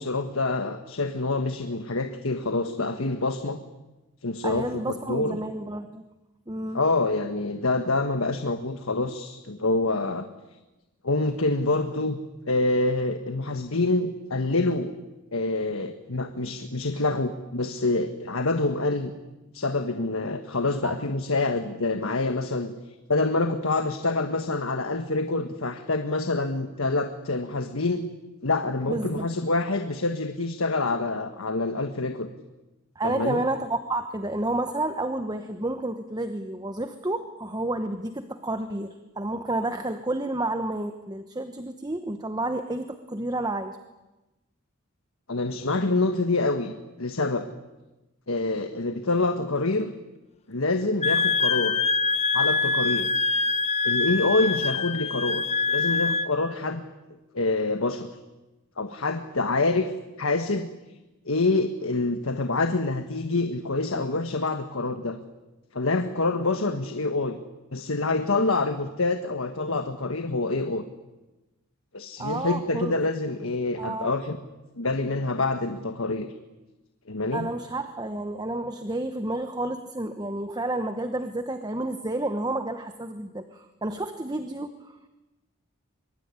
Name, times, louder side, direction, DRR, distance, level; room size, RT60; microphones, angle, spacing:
voice 1, 0.0-3.6 4.2-5.4 6.7-10.3 11.0-12.2 12.5-14.9 15.3-19.1 19.5-22.7 23.1-28.1 28.4-32.3 33.0-33.4 45.3-46.7 47.0-47.5 48.3-49.9 50.5-51.8 52.3-53.1 53.8-56.8 57.3-58.1 58.8-59.9 60.2-60.7 61.3-65.2 65.7-67.4 67.7-70.8 71.9-74.4 74.8-76.3 77.1-77.5, left 2 dB, 70° left, 7 dB, 1.4 m, -26 dB
voice 2, 4.4-6.0 6.5-6.8 20.8-21.0 28.9-29.3 33.0-43.8 72.2-72.9 73.8-74.1 77.3-85.1, right 2 dB, 20° right, 8 dB, 1.1 m, -30 dB
Wind instrument woodwind instrument, 51.0-56.3, left 4 dB, 30° left, 1.1 m, -24 dB
24.0 x 23.0 x 9.7 m, 1.1 s
head